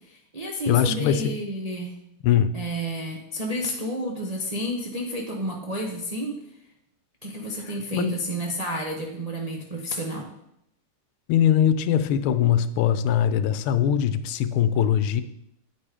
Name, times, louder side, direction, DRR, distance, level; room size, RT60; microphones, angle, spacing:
voice 1, 0.0-2.0 2.5-6.4 7.2-10.3, equal, 70° right, -1 dB, 0.3 m, -31 dB
voice 2, 0.7-1.3 2.2-2.6 7.9-8.1 11.3-15.2, left 9 dB, 90° left, 12 dB, 1.5 m, -21 dB
9.1 x 5.4 x 4.9 m, 0.79 s
omnidirectional pair, 2.3 m